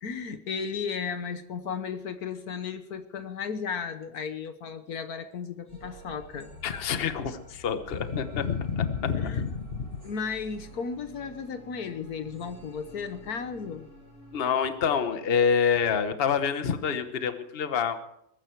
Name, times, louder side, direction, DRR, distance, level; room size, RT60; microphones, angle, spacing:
voice 1, 0.0-6.5 9.2-9.4 10.0-13.9, left 6 dB, 70° left, 9 dB, 1.5 m, -35 dB
sound 1, 5.7-15.4, right 2 dB, 20° left, 6.6 m, -48 dB
voice 2, 6.6-9.9 14.3-18.0, left 7 dB, 40° left, 9 dB, 1.2 m, -27 dB
21.5 x 12.5 x 4.7 m, 0.76 s
omnidirectional pair, 1.7 m